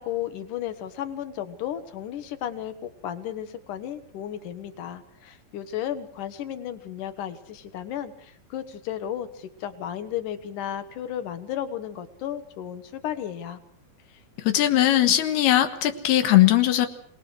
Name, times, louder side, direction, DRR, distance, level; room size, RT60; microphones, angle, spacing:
voice 1, 0.0-13.6, left 10 dB, 65° left, 10 dB, 2.7 m, -34 dB
voice 2, 14.4-16.9, left 13 dB, 90° left, 8 dB, 3.4 m, -19 dB
26.5 x 19.0 x 6.3 m, 0.65 s
omnidirectional pair, 4.4 m